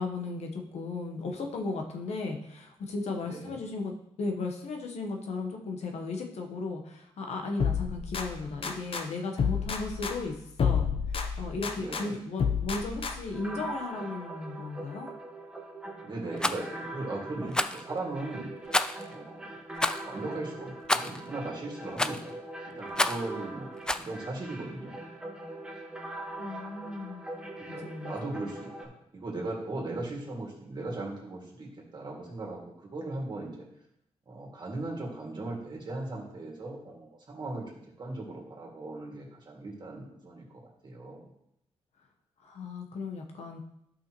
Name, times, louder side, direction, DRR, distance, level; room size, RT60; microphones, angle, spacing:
voice 1, 0.0-10.9 11.4-15.1 26.3-27.2 27.7-28.1 42.4-43.6, left 3 dB, 80° left, 3 dB, 1.1 m, -36 dB
voice 2, 3.3-3.6 11.8-12.1 16.0-18.5 19.1-19.6 19.9-22.4 22.7-24.9 27.6-33.7 34.3-37.7 38.0-41.3, right 2 dB, 40° right, -2 dB, 2.3 m, -38 dB
sound 1, 7.6-9.0 9.4-12.0 12.4-13.4, left 6 dB, 55° left, 0.8 m, -30 dB
sound 2, 13.3-28.8, right 2 dB, 10° right, 1.2 m, -42 dB
Rattle, 16.4-16.6 17.5-17.8 18.7-19.1 19.8-20.0 20.9-21.2 22.0-22.3 23.0-23.3 23.9-24.1, left 1 dB, 5° left, 0.3 m, -28 dB
11.5 x 5.4 x 3.1 m, 0.78 s
cardioid pair, 105°, 11 cm